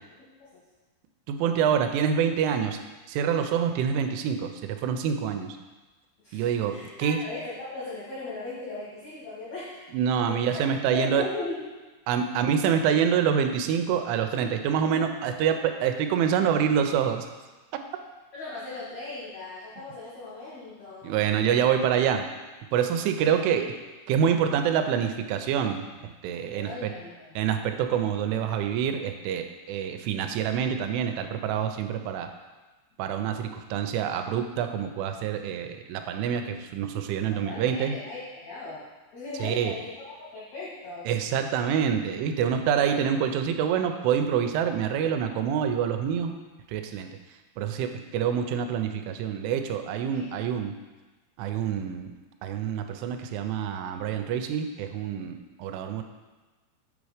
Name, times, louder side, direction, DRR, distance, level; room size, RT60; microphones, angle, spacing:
voice 1, 0.2-0.6 6.2-9.9 10.2-10.6 10.9-11.6 12.1-12.3 18.3-21.2 23.2-23.8 26.5-27.3 37.3-38.8 39.1-41.1 50.1-50.5, left 3 dB, 85° left, -9 dB, 1.5 m, -38 dB
voice 2, 1.3-2.8 3.1-5.6 6.3-7.2 9.9-11.3 12.1-17.3 21.0-22.3 22.7-23.7 24.1-25.9 26.2-26.9 27.4-32.3 33.0-38.0 39.4-39.7 41.1-46.3 46.7-47.1 47.6-50.7 51.4-52.1 52.4-56.0, right 8 dB, 85° right, 7 dB, 3.0 m, -26 dB
7.6 x 4.1 x 4.8 m, 1.2 s
omnidirectional pair, 5.4 m